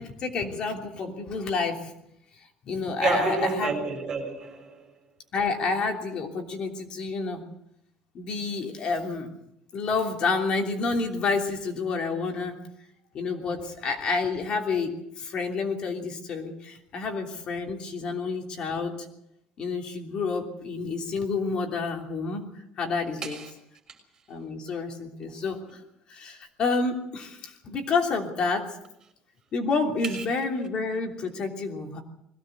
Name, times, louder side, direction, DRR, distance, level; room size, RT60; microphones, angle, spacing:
voice 1, 0.0-1.9 2.6-3.7 5.3-7.4 8.1-9.3 9.7-12.6 13.1-19.0 19.6-22.4 22.8-23.4 24.3-25.8 26.1-28.7 29.5-32.0, left 4 dB, 40° left, 3.1 m, -29 dB
voice 2, 3.0-4.7 23.2-23.5 30.1-30.2, right 4 dB, 25° right, 6.3 m, -29 dB
21.5 x 17.0 x 8.0 m
cardioid pair, 160°, 2 cm